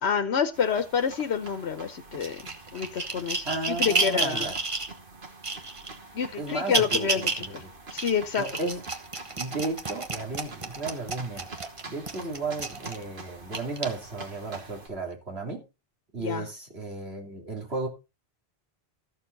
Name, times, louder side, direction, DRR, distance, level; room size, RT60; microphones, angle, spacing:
voice 1, 0.0-4.5 6.1-7.6 7.9-8.4 16.2-16.5, left 7 dB, 85° left, 8 dB, 1.2 m, -28 dB
sound 1, 0.5-14.9, right 3 dB, 55° right, 1.8 m, -45 dB
sound 2, 2.2-4.9 5.4-5.9 6.5-7.5 7.9-13.0 13.5-13.8 14.6-14.7, right 3 dB, 30° right, 1.1 m, -30 dB
voice 2, 3.4-4.6 6.4-7.7 8.4-9.0 9.4-11.5 11.9-15.6 16.1-17.9, right 3 dB, 75° right, 1 dB, 3.4 m, -34 dB
13.5 x 7.0 x 4.0 m, 0.27 s
omnidirectional pair, 1.1 m